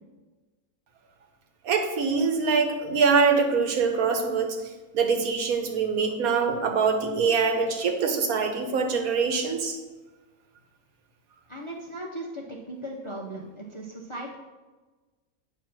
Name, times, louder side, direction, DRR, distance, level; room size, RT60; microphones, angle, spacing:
voice 1, 1.6-4.6 4.9-9.8, right 5 dB, 85° right, 4 dB, 1.3 m, -24 dB
voice 2, 11.5-14.4, right 1 dB, 35° left, -2 dB, 0.5 m, -37 dB
8.8 x 3.0 x 6.0 m, 1.3 s
omnidirectional pair, 1.5 m